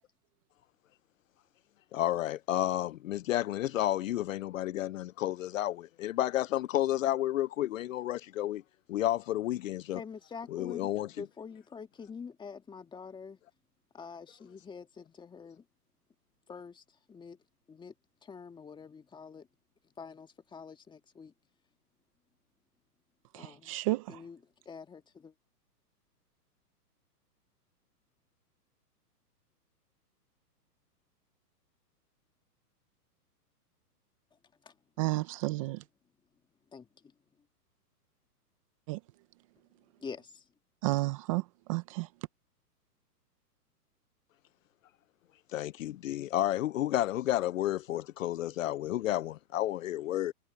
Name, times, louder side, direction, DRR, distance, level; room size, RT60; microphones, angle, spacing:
voice 1, 1.9-8.6 8.9-10.0 10.5-11.1 45.5-50.3, left 13 dB, 55° left, 0.7 m, -31 dB
voice 2, 9.9-13.4 13.9-15.6 16.5-16.8 17.1-17.4 17.7-17.9 18.2-19.5 20.0-21.3 23.4-23.7 24.1-24.4 24.7-25.3 34.7-34.8 36.7-36.9 40.0-40.4, left 5 dB, 10° left, 1.7 m, -46 dB
voice 3, 23.3-24.2 35.0-35.8 38.9-39.0 40.8-42.1, right 20 dB, 20° right, 0.6 m, -32 dB
hypercardioid pair, 145°, 48 cm